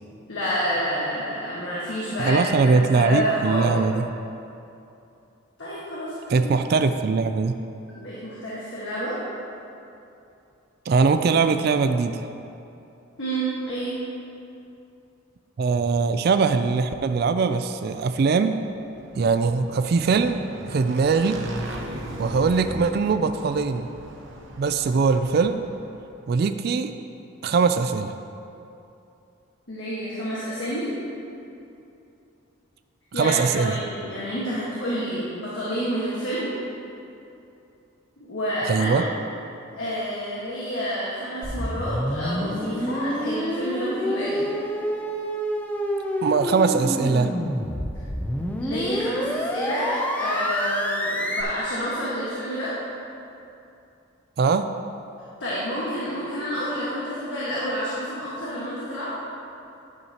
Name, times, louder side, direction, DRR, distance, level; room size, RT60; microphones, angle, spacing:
voice 1, 0.3-2.5 2.7-3.7 5.6-6.4 7.9-9.2 13.2-13.9 29.7-30.9 33.1-36.4 38.2-39.1 39.7-44.5 48.6-52.7 55.4-59.1, equal, 65° left, -8 dB, 1.6 m, -29 dB
voice 2, 2.2-4.1 6.3-7.6 10.9-12.2 15.6-18.6 19.2-20.4 20.7-21.4 22.2-23.9 24.6-25.6 26.3-26.9 27.4-28.1 33.2-33.8 38.7-39.0 46.2-47.3 54.4-54.7, right 4 dB, 50° right, 9 dB, 0.3 m, -21 dB
Motorcycle / Engine, 18.7-26.1, right 1 dB, 65° right, 1.0 m, -38 dB
sound 1, 41.4-51.4, equal, 10° left, 0.5 m, -28 dB
11.0 x 8.4 x 2.9 m, 2.7 s
head